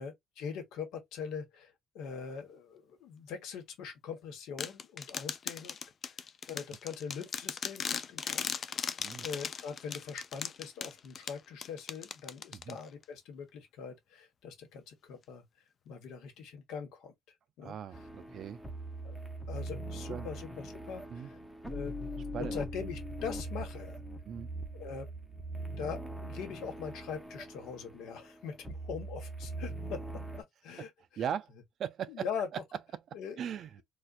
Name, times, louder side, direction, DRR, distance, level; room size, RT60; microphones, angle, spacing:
voice 1, 0.0-5.8 6.1-6.2 6.5-8.7 9.2-15.4 15.8-17.1 17.6-17.7 19.0-19.2 19.5-21.4 21.7-21.9 22.4-24.0 24.7-25.1 25.8-31.2 32.1-32.5 33.1-33.4, left 6 dB, 70° left, 1.3 m, -42 dB
sound 1, 4.6-13.0, left 6 dB, 35° left, 0.4 m, -38 dB
voice 2, 17.6-18.6 20.1-20.3 21.1-21.3 22.3-22.6 24.2-24.5 30.8-30.9 31.2-31.5 31.8-32.3 33.4-33.7, right 8 dB, 45° right, 0.4 m, -38 dB
sound 2, 17.9-30.4, right 1 dB, ahead, 0.7 m, -41 dB
4.2 x 2.2 x 2.5 m
cardioid pair, 155°, 0 cm